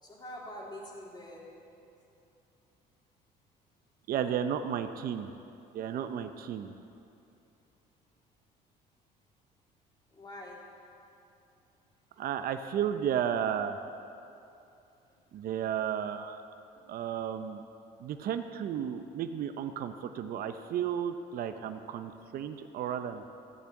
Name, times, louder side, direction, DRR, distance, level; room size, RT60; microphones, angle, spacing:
voice 1, 0.0-1.6 10.1-10.7 15.0-15.1, left 1 dB, 25° left, -3 dB, 2.9 m, -45 dB
voice 2, 4.1-5.3 5.7-6.7 12.2-13.8 15.3-16.4 16.9-17.6 18.0-23.3, right 9 dB, 60° right, 8 dB, 0.6 m, -33 dB
14.5 x 7.0 x 8.5 m, 2.7 s
cardioid pair, 110°, 17 cm